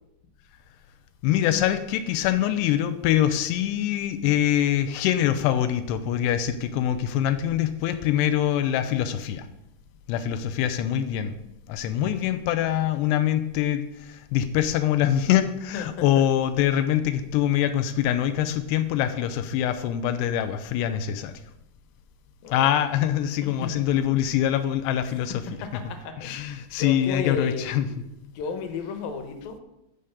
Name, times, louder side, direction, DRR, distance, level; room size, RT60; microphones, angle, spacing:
voice 1, 1.2-9.5 10.1-11.3 11.7-21.4 22.5-25.4 26.2-27.9, left 11 dB, 90° left, 9 dB, 2.8 m, -24 dB
voice 2, 15.7-16.2 22.4-22.7 23.4-23.8 25.0-25.1 25.6-26.5 26.8-28.1 28.3-29.6, left 5 dB, 70° left, 6 dB, 2.8 m, -34 dB
12.5 x 5.0 x 7.1 m, 0.86 s
omnidirectional pair, 4.7 m